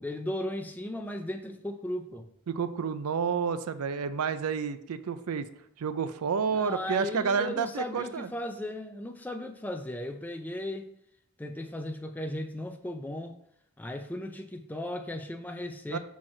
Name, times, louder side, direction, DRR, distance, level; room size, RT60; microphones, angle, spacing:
voice 1, 0.0-2.3 6.5-10.9 11.4-13.4 13.8-16.0, left 1 dB, 10° left, 5 dB, 0.4 m, -36 dB
voice 2, 2.5-5.5 5.8-8.3 15.9-16.0, right 6 dB, 85° right, 12 dB, 0.4 m, -30 dB
6.0 x 4.7 x 4.3 m, 0.71 s
head